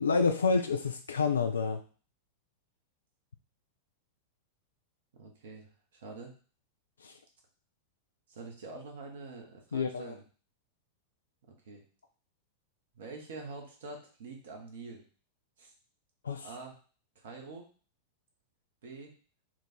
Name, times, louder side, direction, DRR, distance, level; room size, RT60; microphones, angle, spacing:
voice 1, 0.0-1.8 7.0-7.1 9.7-10.1 16.2-16.5, left 4 dB, 70° left, 7 dB, 0.3 m, -28 dB
voice 2, 5.2-6.3 8.3-10.2 11.5-11.8 12.9-15.0 15.6-15.7 16.4-16.8 17.1-17.7 18.8-19.1, right 3 dB, 60° right, 2 dB, 1.1 m, -46 dB
4.5 x 2.5 x 4.3 m, 0.39 s
figure-of-eight pair, 90°, 0 cm